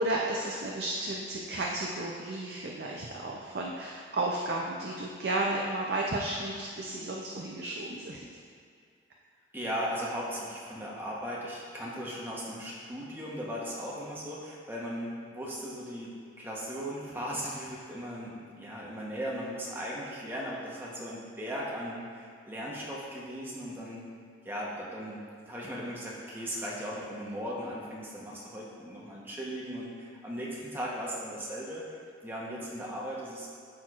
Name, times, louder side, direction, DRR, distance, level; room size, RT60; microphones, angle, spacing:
voice 1, 0.0-8.3, right 2 dB, 55° right, -2 dB, 0.5 m, -33 dB
voice 2, 9.5-24.1 24.4-31.8 32.2-33.5, equal, 10° right, -5 dB, 1.0 m, -37 dB
12.0 x 4.4 x 2.5 m, 2.2 s
head